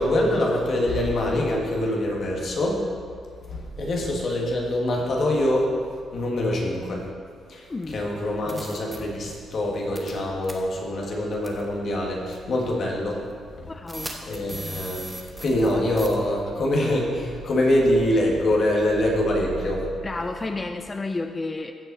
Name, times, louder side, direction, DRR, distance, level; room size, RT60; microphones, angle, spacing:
voice 1, 0.0-2.8 3.5-5.7 6.1-7.0 7.5-13.2 14.3-19.9, left 1 dB, 50° left, -1 dB, 1.8 m, -24 dB
voice 2, 7.7-8.1 13.7-14.1 20.0-21.7, left 3 dB, 20° left, 6 dB, 0.3 m, -31 dB
sound 1, 7.8-7.9 8.5-9.0 10.0-10.2 10.4-10.5 11.4-11.6 12.3-12.4 13.9-15.7 16.0-16.1, right 2 dB, 10° right, 1.0 m, -37 dB
15.5 x 5.6 x 4.1 m, 2.2 s
cardioid pair, 150°, 0 cm